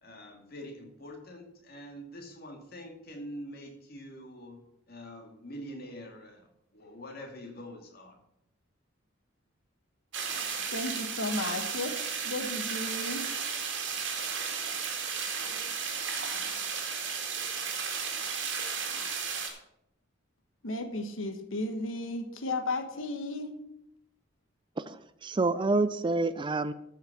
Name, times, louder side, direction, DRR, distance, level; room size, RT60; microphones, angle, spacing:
voice 1, 0.0-4.6 4.9-8.2, equal, 50° left, 3 dB, 2.2 m, -45 dB
sound 1, 10.1-19.5, right 6 dB, 65° right, 2.2 m, -34 dB
voice 2, 10.7-12.0 12.2-13.3 20.6-23.5, left 2 dB, 85° left, 7 dB, 1.3 m, -34 dB
voice 3, 24.8-26.7, right 3 dB, 25° right, 14 dB, 0.4 m, -28 dB
13.0 x 5.7 x 5.8 m, 0.78 s
head